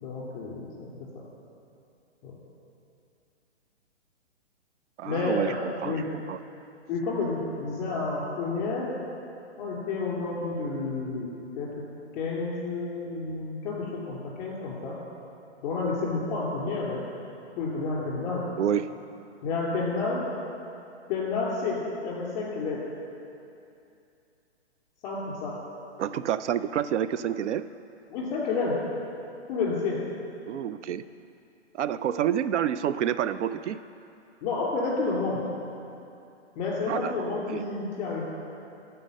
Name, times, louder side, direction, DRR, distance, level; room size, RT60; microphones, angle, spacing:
voice 1, 0.0-1.2 2.2-2.3 5.0-6.1 6.9-8.9 9.6-11.7 12.1-15.0 15.6-17.0 17.6-18.5 19.4-20.3 21.1-22.8 25.0-25.6 28.1-28.7 29.5-30.0 34.4-35.4 36.6-38.2, left 3 dB, 25° left, -4 dB, 2.5 m, -30 dB
voice 2, 5.0-6.4 18.6-18.9 26.0-27.7 30.5-31.0 31.7-33.8 36.9-37.6, right 10 dB, 85° right, 13 dB, 0.5 m, -28 dB
12.5 x 4.5 x 6.4 m, 2.6 s
hypercardioid pair, 155°, 35 cm